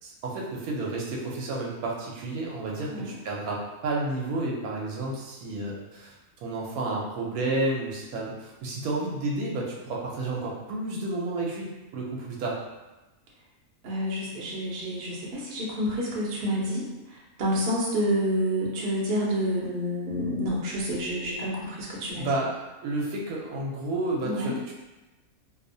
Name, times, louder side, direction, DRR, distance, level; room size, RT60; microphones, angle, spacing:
voice 1, 0.0-12.6 22.2-24.7, right 2 dB, 80° right, -3 dB, 1.1 m, -31 dB
voice 2, 13.8-16.8 17.1-22.3 24.2-24.5, equal, 55° right, -4 dB, 0.7 m, -28 dB
2.7 x 2.0 x 2.6 m, 1.1 s
omnidirectional pair, 1.5 m